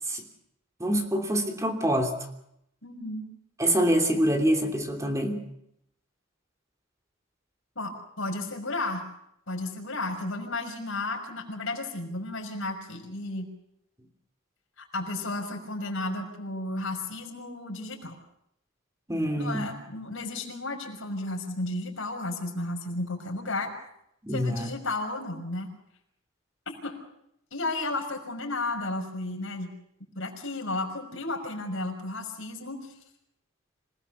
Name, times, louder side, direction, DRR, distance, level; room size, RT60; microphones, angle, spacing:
voice 1, 0.8-2.2 3.6-5.4 19.1-19.7 24.2-24.7, equal, 15° right, 4 dB, 3.0 m, -25 dB
voice 2, 2.8-3.2 7.8-9.0 9.5-13.5 14.8-18.2 19.4-23.7 24.3-25.7 26.7-27.0 27.5-29.7 30.1-32.9, left 2 dB, 65° left, 3 dB, 5.9 m, -33 dB
27.0 x 18.5 x 7.1 m, 0.76 s
head